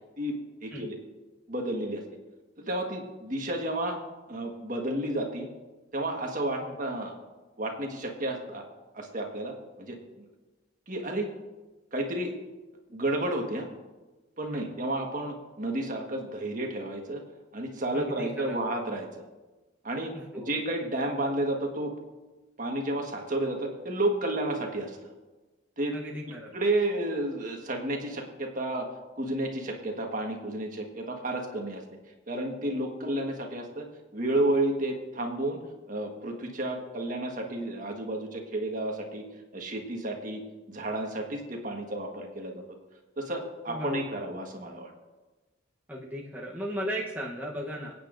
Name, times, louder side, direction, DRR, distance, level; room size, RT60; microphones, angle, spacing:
voice 1, 0.6-1.0 1.5-2.0 2.6-4.0 4.3-5.5 5.9-7.2 7.6-8.6 8.9-9.5 9.8-10.2 10.9-11.3 11.9-12.3 12.9-13.7 14.4-17.2 17.5-19.2 19.8-21.9 22.6-25.1 25.8-26.0 26.5-28.9 29.1-31.8 32.3-33.9 34.1-35.6 35.9-39.2 39.5-40.4 40.7-42.6 43.2-44.9, right 1 dB, 40° right, 2 dB, 1.4 m, -31 dB
voice 2, 17.9-18.6 20.1-20.6 25.9-26.5 43.7-44.0 45.9-47.9, equal, 10° right, -4 dB, 0.9 m, -36 dB
26.5 x 8.9 x 2.6 m, 1.2 s
head